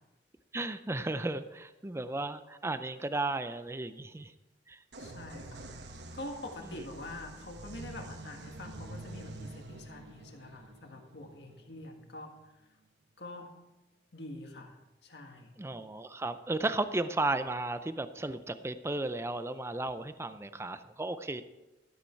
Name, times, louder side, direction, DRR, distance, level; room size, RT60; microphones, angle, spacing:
voice 1, 0.5-4.3 4.7-4.8 15.6-21.4, right 2 dB, 15° right, 11 dB, 0.5 m, -34 dB
sound 1, 4.9-12.5, right 2 dB, 75° right, 1.1 m, -47 dB
voice 2, 5.0-5.7 6.1-12.5 13.2-13.6 14.1-14.8 15.0-15.5, left 1 dB, 70° left, 3 dB, 1.8 m, -45 dB
13.0 x 8.8 x 4.6 m, 1.0 s
head